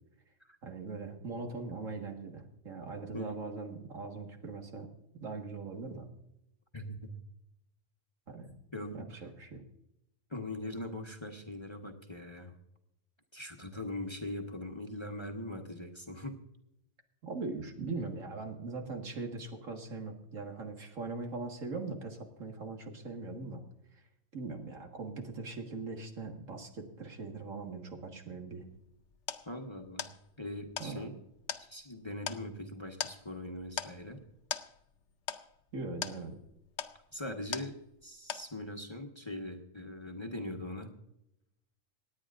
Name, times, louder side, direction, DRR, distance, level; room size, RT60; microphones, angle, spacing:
voice 1, 0.6-4.9 5.1-6.1 8.3-8.5 8.9-9.6 17.2-23.6 24.3-28.7 30.8-31.1 35.7-36.4, right 3 dB, 80° right, 3 dB, 2.1 m, -41 dB
voice 2, 6.7-7.1 8.7-9.3 10.3-12.6 13.3-16.4 29.5-30.1 30.4-31.1 31.6-34.2 37.1-40.9, left 1 dB, 25° left, 3 dB, 1.1 m, -41 dB
sound 1, 28.6-38.0 38.3-38.9, left 8 dB, 70° left, 1.0 m, -42 dB
27.0 x 9.6 x 2.5 m, 0.81 s
omnidirectional pair, 1.3 m